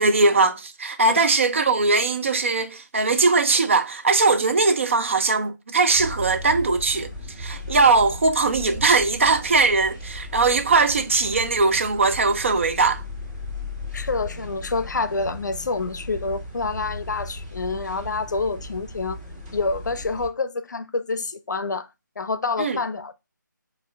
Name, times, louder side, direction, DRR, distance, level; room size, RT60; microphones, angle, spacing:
voice 1, 0.0-7.1 7.4-13.0 22.6-22.8, right 3 dB, 40° right, 0.5 m, -20 dB
sound 1, 5.9-20.3, left 1 dB, 20° right, 1.9 m, -36 dB
voice 2, 13.9-19.2 19.5-21.9 22.2-23.1, left 3 dB, 60° left, 0.5 m, -27 dB
5.2 x 2.5 x 3.2 m
figure-of-eight pair, 165°, 11 cm